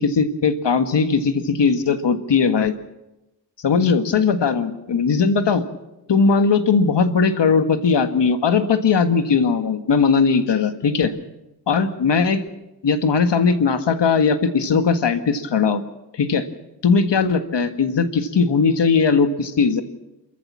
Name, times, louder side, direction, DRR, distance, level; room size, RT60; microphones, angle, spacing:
voice 1, 0.0-2.7 3.6-5.6 6.1-11.1 11.7-12.4 12.8-15.8 16.2-16.5 16.8-19.8, left 5 dB, 80° left, 8 dB, 1.7 m, -19 dB
27.5 x 14.0 x 7.5 m, 0.96 s
wide cardioid pair, 150°, 42 cm